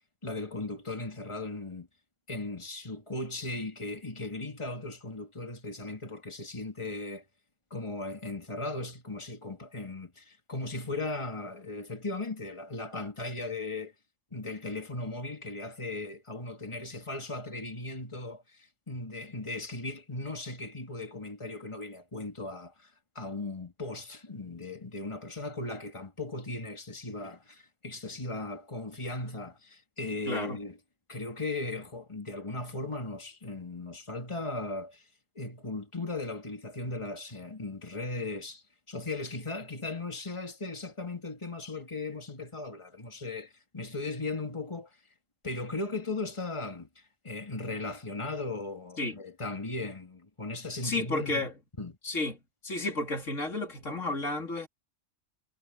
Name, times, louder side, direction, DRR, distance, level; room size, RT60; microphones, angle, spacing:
voice 1, 0.2-1.9 2.3-7.2 7.7-13.9 14.3-22.9 23.1-30.8 31.1-35.0 35.3-44.9 45.4-51.5 51.8-52.0, left 2 dB, 25° left, 2.7 m, -37 dB
voice 2, 30.3-30.6 49.0-49.2 50.8-51.5 52.0-52.4 52.6-54.7, left 2 dB, 80° left, 3.4 m, -32 dB
omnidirectional pair, 1.3 m